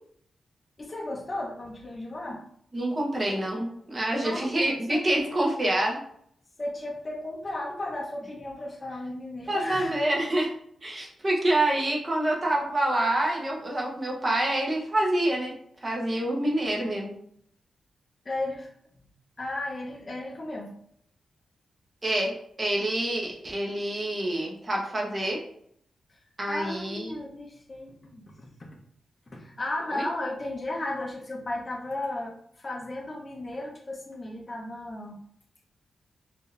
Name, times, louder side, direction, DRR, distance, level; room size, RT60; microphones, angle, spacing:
voice 1, 0.8-2.4 4.1-5.4 6.6-10.1 18.2-18.7 19.4-20.7 26.1-26.2 26.5-28.7 29.3-35.2, left 1 dB, 30° left, -2 dB, 0.8 m, -35 dB
voice 2, 2.7-6.0 9.5-10.5 10.8-15.5 15.8-17.1 22.0-25.4 26.4-27.1 29.9-30.1, right 1 dB, 30° right, -1 dB, 1.1 m, -27 dB
4.6 x 2.7 x 3.3 m, 0.66 s
wide cardioid pair, 140°, 0 cm